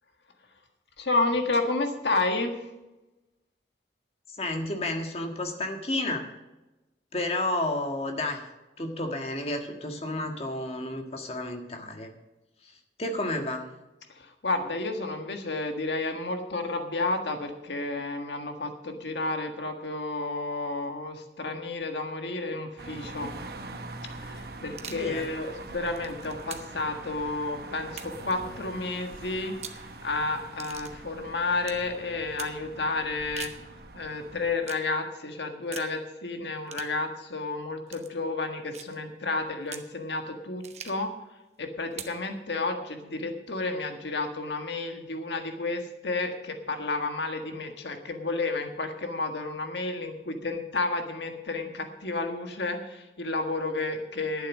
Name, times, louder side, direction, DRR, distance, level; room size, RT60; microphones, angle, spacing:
voice 1, 1.0-2.7 14.1-23.3 24.1-33.5 33.9-41.1 41.6-54.5, left 3 dB, 85° left, 5 dB, 1.6 m, -31 dB
voice 2, 4.4-6.2 7.1-8.4 8.8-12.1 13.0-13.7 24.9-25.2, left 1 dB, 35° left, 4 dB, 1.7 m, -31 dB
sound 1, 22.8-34.5, right 2 dB, 60° right, 1.2 m, -43 dB
sound 2, 24.7-25.1 25.7-26.8 27.9-28.3 29.5-29.8 30.6-30.9 31.6-31.8 32.4-32.6 33.2-33.6 34.6-34.9 35.7-35.9 36.7-37.0 37.9-38.1 38.7-39.0 39.7-39.9 40.6-41.1 41.9-42.2, right 8 dB, 40° right, 1.0 m, -42 dB
11.5 x 9.1 x 6.2 m, 1.0 s
head